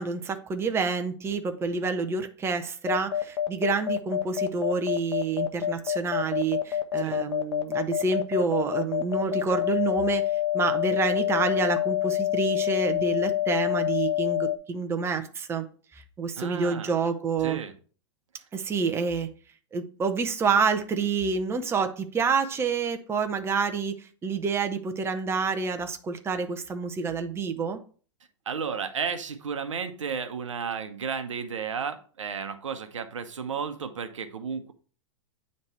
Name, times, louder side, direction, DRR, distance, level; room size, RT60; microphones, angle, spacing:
voice 1, 0.0-10.2 10.5-15.6 15.9-17.6 18.5-19.3 19.7-27.8, right 5 dB, 15° right, 6 dB, 0.7 m, -28 dB
sound 1, 2.9-14.6, left 12 dB, 70° left, 0.8 m, -26 dB
voice 2, 16.4-16.9 17.4-17.7 28.5-34.7, right 6 dB, 85° right, 9 dB, 0.9 m, -33 dB
9.2 x 3.2 x 4.2 m, 0.41 s
hypercardioid pair, 115°, 16 cm